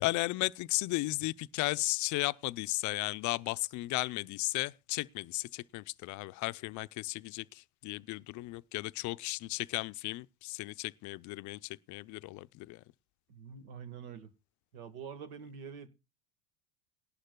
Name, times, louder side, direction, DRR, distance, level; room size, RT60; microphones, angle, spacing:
voice 1, 0.0-12.8, left 21 dB, 45° left, 0.5 m, -35 dB
voice 2, 13.3-14.3 14.7-15.9, right 7 dB, 80° right, 1.6 m, -45 dB
19.0 x 11.5 x 2.2 m
supercardioid pair, 105°, 42 cm